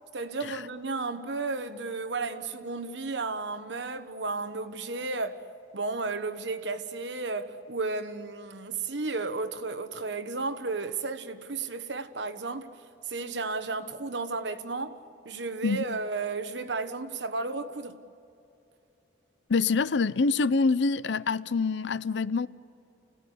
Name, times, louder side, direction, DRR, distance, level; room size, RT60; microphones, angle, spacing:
voice 1, 0.1-5.4 5.7-12.7 13.1-15.0 15.2-18.0, right 3 dB, 70° right, 1.3 m, -33 dB
voice 2, 15.6-16.0 19.5-22.5, left 4 dB, 70° left, 0.6 m, -26 dB
29.5 x 16.5 x 9.9 m
head